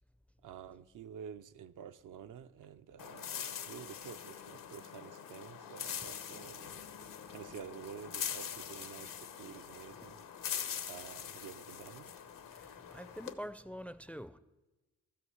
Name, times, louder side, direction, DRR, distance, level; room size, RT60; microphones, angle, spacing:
voice 1, 0.4-6.8 7.3-10.2 10.9-12.1, right 8 dB, 75° right, 0.6 m, -50 dB
sound 1, 3.0-13.3, left 8 dB, 85° left, 1.0 m, -43 dB
voice 2, 12.5-14.4, equal, 5° left, 0.4 m, -46 dB
13.5 x 5.9 x 8.0 m
wide cardioid pair, 135°, 32 cm